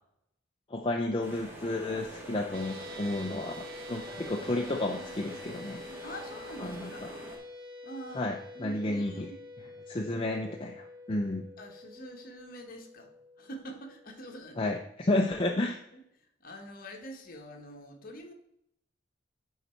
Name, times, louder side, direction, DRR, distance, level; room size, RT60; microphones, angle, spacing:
voice 1, 0.7-5.8 6.6-7.1 8.1-9.3 9.9-11.5 14.6-15.8, left 2 dB, 25° left, 2 dB, 0.5 m, -32 dB
sound 1, 1.2-7.4, right 1 dB, 10° right, 1.5 m, -46 dB
sound 2, 2.5-14.9, left 1 dB, 70° right, 1.4 m, -47 dB
voice 2, 6.0-7.0 7.8-9.4 10.1-10.4 11.6-13.1 13.4-14.7 15.9-16.0 16.4-18.3, right 1 dB, 45° left, 3 dB, 1.2 m, -45 dB
10.0 x 4.1 x 4.4 m, 0.77 s
head